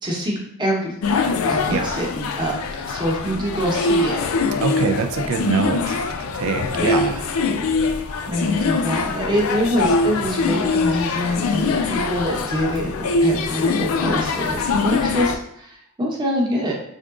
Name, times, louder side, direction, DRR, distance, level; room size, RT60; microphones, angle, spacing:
voice 1, 0.0-4.2 6.7-7.3 8.3-15.7 16.0-16.7, equal, 20° right, -3 dB, 0.8 m, -25 dB
sound 1, 1.0-15.4, left 4 dB, 85° left, 0.4 m, -23 dB
voice 2, 4.6-7.2, right 5 dB, 90° right, 6 dB, 0.4 m, -24 dB
3.7 x 3.5 x 2.4 m, 0.74 s
head